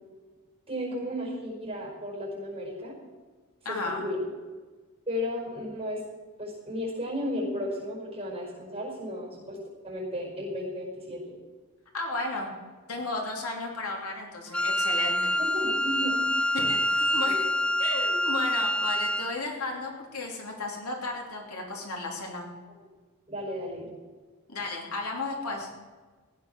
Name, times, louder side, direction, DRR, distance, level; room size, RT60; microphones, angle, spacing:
voice 1, 0.7-3.0 3.7-4.3 5.1-6.0 6.4-9.6 9.8-11.2 15.4-16.5 17.2-17.4 23.3-23.9, left 1 dB, 25° right, -2 dB, 5.3 m, -34 dB
voice 2, 3.6-4.0 11.9-12.5 12.9-15.3 16.5-17.4 17.8-22.5 24.5-25.7, left 3 dB, 85° left, 1 dB, 3.1 m, -34 dB
Wind instrument woodwind instrument, 14.5-19.4, equal, 5° left, 0.3 m, -26 dB
15.5 x 9.6 x 6.1 m, 1.4 s
head